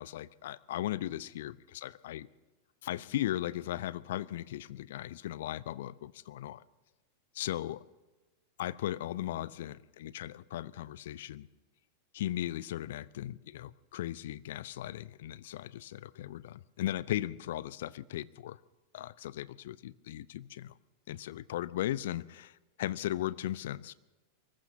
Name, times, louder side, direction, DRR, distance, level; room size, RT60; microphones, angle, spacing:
voice 1, 0.0-2.3 2.8-6.6 7.3-7.8 8.6-11.5 12.1-18.6 18.9-20.7 21.1-22.5 22.8-23.9, left 13 dB, 55° left, 20 dB, 0.6 m, -37 dB
24.0 x 20.5 x 2.8 m, 1.1 s
figure-of-eight pair, 90°, 0 cm